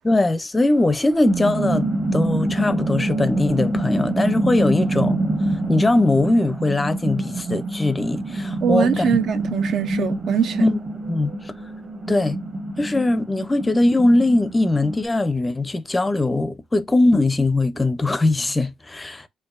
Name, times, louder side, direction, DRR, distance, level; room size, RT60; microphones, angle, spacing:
voice 1, 0.0-1.9 2.1-5.2 5.7-9.1 10.6-10.8 11.1-11.3 12.1-12.4 12.8-19.3, left 2 dB, 20° left, 0.4 m, -20 dB
sound 1, 0.8-15.0, right 2 dB, 40° right, 1.2 m, -26 dB
voice 2, 8.6-10.6, right 7 dB, 70° right, 0.6 m, -22 dB
4.5 x 2.5 x 2.4 m
cardioid pair, 90°, 0 cm